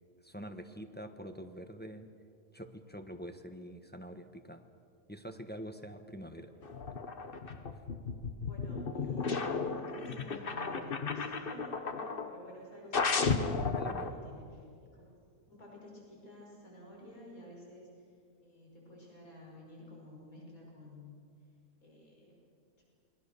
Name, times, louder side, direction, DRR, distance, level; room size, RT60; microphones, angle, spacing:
voice 1, 0.2-2.1 2.5-4.6 5.1-6.5 13.8-14.1, equal, 10° left, 6 dB, 1.0 m, -45 dB
sound 1, 6.6-12.4 12.9-14.1, left 4 dB, 40° left, 1.3 m, -34 dB
voice 2, 8.4-14.7 14.9-15.2 15.5-18.1 18.4-21.1 21.8-22.5 22.8-22.9, left 1 dB, 70° left, -2 dB, 6.0 m, -52 dB
28.0 x 21.5 x 6.9 m, 2.3 s
omnidirectional pair, 1.5 m